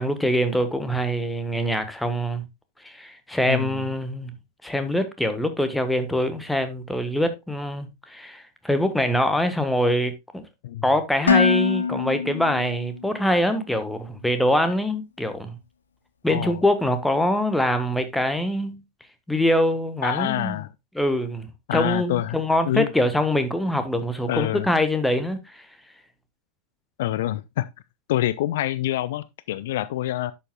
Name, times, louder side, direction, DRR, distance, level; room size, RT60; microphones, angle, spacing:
voice 1, 0.0-2.4 2.8-4.4 4.6-10.4 10.8-15.6 16.2-18.8 19.3-20.6 20.9-25.6, equal, 5° left, 1.3 m, -24 dB
voice 2, 3.5-3.8 10.6-10.8 16.3-16.6 20.0-20.7 21.7-22.9 24.3-24.7 27.0-27.7 28.1-30.3, left 14 dB, 55° left, 0.4 m, -26 dB
Dishes pots and pans, 11.3-13.3, left 6 dB, 70° left, 1.1 m, -23 dB
11.0 x 7.3 x 2.3 m
figure-of-eight pair, 90°, 0 cm